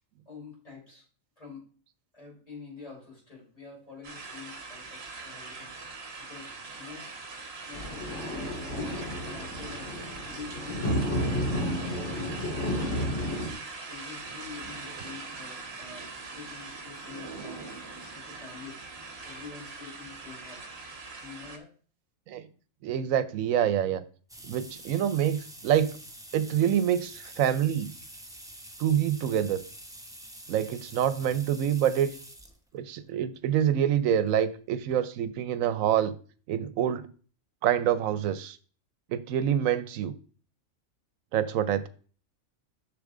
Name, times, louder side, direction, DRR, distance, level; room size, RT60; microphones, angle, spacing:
voice 1, 0.3-1.0 1.4-1.6 2.1-6.5 6.8-17.6 18.1-20.6 21.2-21.7, left 5 dB, 25° left, -5 dB, 4.6 m, -47 dB
sound 1, 4.0-21.6, right 3 dB, 55° right, 1.3 m, -42 dB
sound 2, 7.7-13.5, equal, 60° left, 2.4 m, -31 dB
voice 2, 22.8-24.0 24.4-25.9 26.3-27.9 28.8-29.6 30.5-32.1 32.7-36.1 36.5-37.1 37.6-38.6 39.1-40.1 41.3-41.9, right 10 dB, 90° right, 14 dB, 1.0 m, -26 dB
sound 3, 24.3-32.6 33.4-33.5 34.8-34.9 35.2-35.3 35.6-35.7, right 1 dB, 5° right, 0.9 m, -47 dB
6.9 x 6.5 x 3.7 m, 0.41 s
omnidirectional pair, 1.4 m